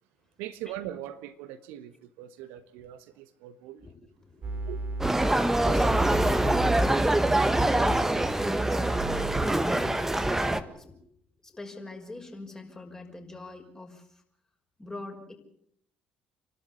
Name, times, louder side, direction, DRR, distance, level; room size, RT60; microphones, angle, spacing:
voice 1, 0.4-3.9 4.7-4.8, right 12 dB, 65° right, 1.3 m, -41 dB
voice 2, 3.8-4.9 5.6-11.0 11.4-14.2 14.8-15.3, left 2 dB, 15° left, 6.0 m, -43 dB
sound 1, 4.4-5.1 5.8-8.0 8.6-9.5, right 2 dB, 35° right, 3.6 m, -32 dB
sound 2, 5.0-10.6, right 1 dB, 10° right, 1.6 m, -24 dB
29.0 x 12.5 x 8.5 m
figure-of-eight pair, 55°, 4 cm